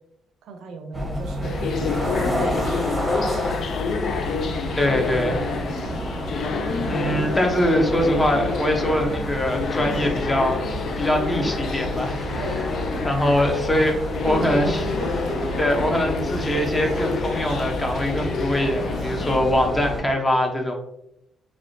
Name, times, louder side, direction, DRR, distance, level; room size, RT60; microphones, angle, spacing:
voice 1, 0.4-3.2 4.2-6.4 9.9-10.3 12.3-13.4 14.2-15.6 18.0-18.5 18.9-19.3, right 3 dB, 80° right, 5 dB, 0.5 m, -37 dB
sound 1, 0.9-20.0, equal, 5° right, 0.8 m, -30 dB
sound 2, 1.4-19.4, left 5 dB, 65° left, 0.3 m, -29 dB
voice 2, 4.8-5.4 6.8-12.2 13.0-14.0 14.2-14.8 15.6-20.7, left 1 dB, 20° left, 3 dB, 0.7 m, -22 dB
3.3 x 2.5 x 2.6 m, 0.80 s
cardioid pair, 90°, 0 cm